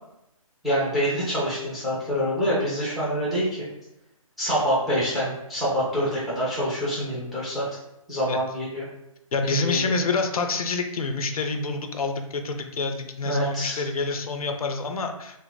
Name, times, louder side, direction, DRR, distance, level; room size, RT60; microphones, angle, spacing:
voice 1, 0.6-3.5 4.4-7.7 8.1-8.8 9.4-10.0 13.2-13.8, equal, ahead, -7 dB, 0.4 m, -26 dB
voice 2, 9.3-15.4, left 3 dB, 85° left, 6 dB, 0.5 m, -27 dB
2.6 x 2.4 x 3.8 m, 0.86 s
hypercardioid pair, 155°, 18 cm